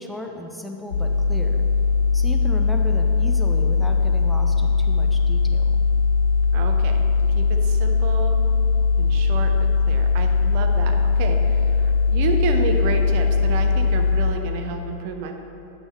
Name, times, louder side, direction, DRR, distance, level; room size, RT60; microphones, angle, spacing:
voice 1, 0.0-1.6 2.1-5.9, left 1 dB, ahead, 1 dB, 0.6 m, -35 dB
sound 1, 0.9-14.3, left 4 dB, 70° left, 1.0 m, -20 dB
voice 2, 6.5-7.0 7.3-8.4 9.0-15.3, right 5 dB, 45° right, 4 dB, 0.7 m, -30 dB
8.9 x 5.5 x 4.4 m, 3.0 s
figure-of-eight pair, 90°, 0 cm